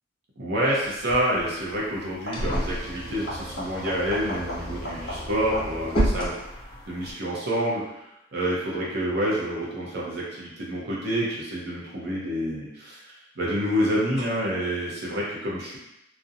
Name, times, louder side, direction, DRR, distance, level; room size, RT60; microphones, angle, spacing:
voice 1, 0.4-6.3 6.9-13.0 13.4-15.8, equal, 55° right, -5 dB, 0.6 m, -28 dB
sound 1, 0.7-0.9 2.1-2.9 3.2-6.6 12.1-12.6 14.2-14.3, equal, 50° left, 0.8 m, -38 dB
sound 2, 0.8-7.1, equal, 25° left, 0.4 m, -31 dB
2.6 x 2.0 x 2.5 m, 0.89 s
head